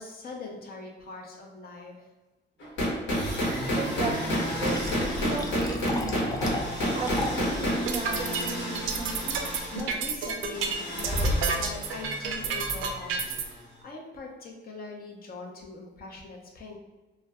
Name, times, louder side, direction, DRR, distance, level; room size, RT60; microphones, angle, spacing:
voice 1, 0.0-2.1 9.7-16.8, left 3 dB, 50° left, 0 dB, 0.7 m, -41 dB
sound 1, 2.6-13.4, equal, 70° left, 1.2 m, -30 dB
Fill (with liquid), 3.6-7.6, left 2 dB, 20° left, 0.4 m, -36 dB
voice 2, 3.8-6.2 6.9-9.4, right 3 dB, 30° right, 0 dB, 0.6 m, -35 dB
sound 2, 7.7-13.4, right 5 dB, 85° right, 0.4 m, -30 dB
2.4 x 2.2 x 3.4 m, 1.2 s
cardioid pair, 90°, 20 cm